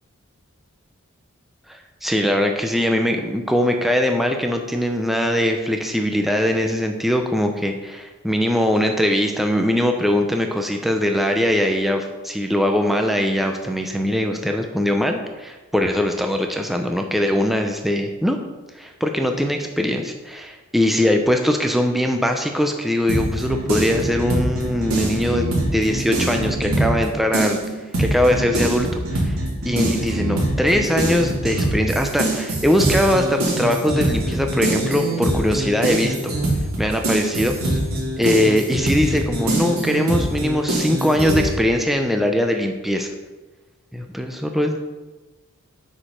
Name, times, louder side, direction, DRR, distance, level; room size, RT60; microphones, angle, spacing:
voice 1, 1.7-18.4 18.8-29.4 29.7-36.3 36.8-37.8 38.2-43.1 43.9-44.8, left 1 dB, ahead, 3 dB, 0.6 m, -21 dB
sound 1, 23.1-27.0 27.3-41.5, right 1 dB, 80° right, 2.8 m, -23 dB
8.5 x 5.0 x 5.8 m, 1.2 s
head